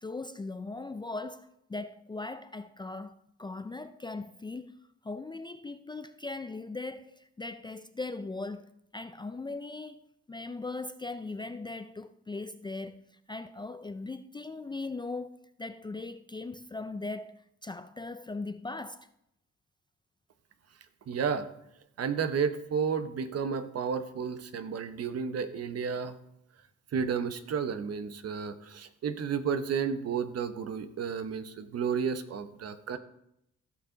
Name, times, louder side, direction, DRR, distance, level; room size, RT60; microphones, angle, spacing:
voice 1, 0.0-4.8 5.0-10.0 10.3-19.1, left 3 dB, 15° left, 0.4 m, -39 dB
voice 2, 21.1-21.5 22.0-26.2 26.9-33.0, right 6 dB, 55° right, 0.9 m, -32 dB
15.5 x 5.7 x 3.9 m
cardioid pair, 90°, 30 cm